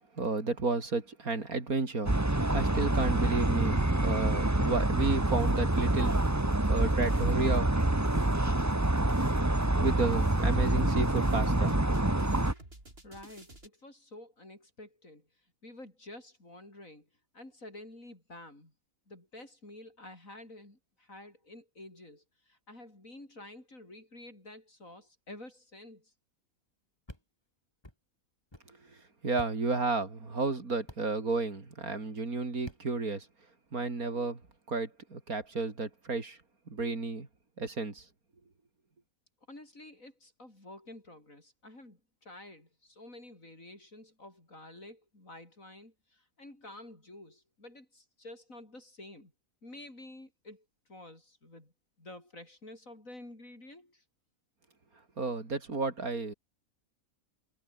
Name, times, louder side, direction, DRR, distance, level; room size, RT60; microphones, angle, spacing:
voice 1, 0.2-6.2 6.7-8.2 9.7-11.7 28.7-28.8 29.2-33.3 33.7-34.4 34.7-36.4 36.7-37.3 37.6-38.0 55.2-56.3, right 3 dB, 70° right, 4.1 m, -32 dB
sound 1, 2.1-12.5, right 1 dB, 10° right, 1.5 m, -27 dB
sound 2, 5.4-13.7, right 1 dB, 40° right, 6.6 m, -51 dB
voice 2, 13.0-15.3 15.6-17.1 17.3-18.7 19.1-26.1 39.5-49.3 49.6-51.7 52.0-54.0, left 1 dB, 60° left, 7.4 m, -50 dB
sound 3, 27.1-27.2 27.8-28.0 28.5-28.7 29.4-29.5 30.9-31.0 32.6-32.8, left 1 dB, 15° left, 3.6 m, -47 dB
omnidirectional pair, 1.6 m